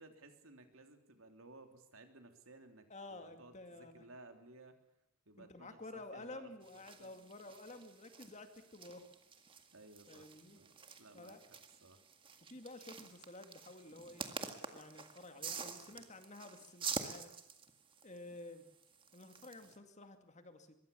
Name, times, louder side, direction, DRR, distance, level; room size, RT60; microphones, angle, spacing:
voice 1, 0.0-4.8 5.3-6.5 7.0-7.2 9.7-12.0, right 2 dB, 65° right, 6 dB, 3.4 m, -58 dB
voice 2, 2.9-4.0 5.4-9.1 10.1-10.6 11.1-11.4 12.5-14.2 14.7-17.3 18.0-18.6 19.1-20.8, left 2 dB, 30° left, 7 dB, 2.3 m, -52 dB
sound 1, 6.6-19.8, right 5 dB, 25° right, 1.9 m, -48 dB
23.5 x 22.5 x 7.1 m, 0.78 s
head